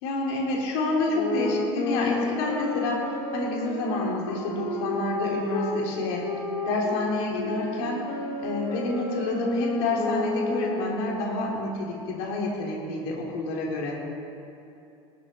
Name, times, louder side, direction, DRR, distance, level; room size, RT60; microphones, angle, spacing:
voice 1, 0.0-6.2 6.6-8.1 8.4-14.0, left 2 dB, 75° left, -2 dB, 3.1 m, -28 dB
sound 1, 1.1-5.8 6.2-11.2, left 3 dB, 50° left, 1.6 m, -31 dB
18.5 x 13.0 x 4.3 m, 2.8 s
cardioid pair, 175°, 14 cm